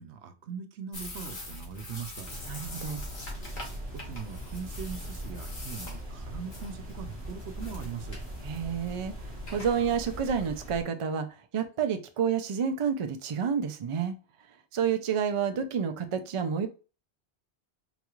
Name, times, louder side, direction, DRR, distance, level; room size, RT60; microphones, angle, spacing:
voice 1, 0.0-2.3 3.9-8.2, right 7 dB, 85° right, 0.9 m, -41 dB
sound 1, 0.9-10.4, left 1 dB, 50° left, 1.2 m, -43 dB
sound 2, 2.2-10.8, equal, 15° right, 0.9 m, -41 dB
voice 2, 2.5-3.0 8.4-9.1 9.5-11.3 11.5-14.1 14.7-16.7, right 7 dB, 50° right, 0.4 m, -29 dB
4.0 x 2.4 x 3.0 m
omnidirectional pair, 1.1 m